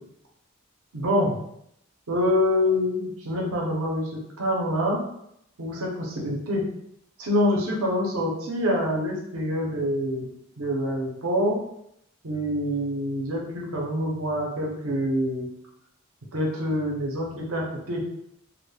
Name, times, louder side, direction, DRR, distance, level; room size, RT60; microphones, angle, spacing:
voice 1, 0.9-1.4 2.1-4.1 4.4-5.0 5.6-6.6 7.2-10.3 10.6-11.6 12.2-15.5 16.3-18.0, left 1 dB, 85° right, -2 dB, 0.6 m, -26 dB
2.2 x 2.1 x 3.2 m, 0.76 s
head